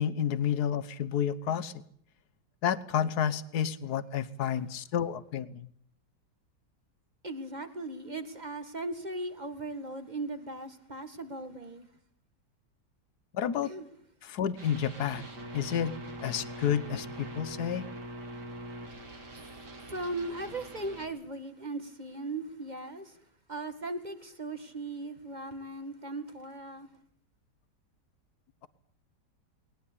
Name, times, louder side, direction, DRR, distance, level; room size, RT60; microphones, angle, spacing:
voice 1, 0.0-1.7 2.6-5.7 13.3-13.7 14.2-15.2 15.5-15.9 16.2-17.9, left 9 dB, 65° left, 1.6 m, -30 dB
voice 2, 7.2-11.9 13.6-13.9 19.3-19.4 19.9-23.2 23.5-26.9, right 2 dB, 25° right, 2.0 m, -38 dB
sound 1, 14.6-21.1, right 1 dB, 75° right, 4.2 m, -43 dB
20.5 x 19.5 x 8.6 m
omnidirectional pair, 1.8 m